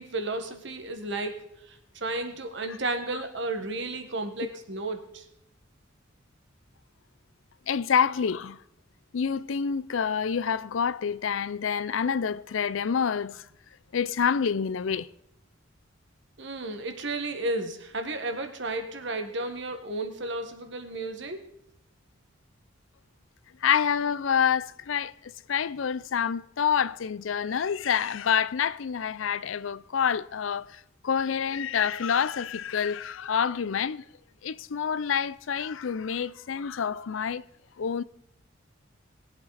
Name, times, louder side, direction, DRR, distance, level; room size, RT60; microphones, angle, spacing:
voice 1, 0.0-1.4 1.7-5.2 16.4-21.5, right 2 dB, 65° right, 1.6 m, -33 dB
voice 2, 7.7-8.6 9.1-13.4 13.9-15.1 23.6-25.1 25.5-30.7 31.0-34.0 34.4-37.4 37.8-38.0, left 7 dB, 75° left, 0.5 m, -27 dB
20.0 x 8.3 x 4.1 m
head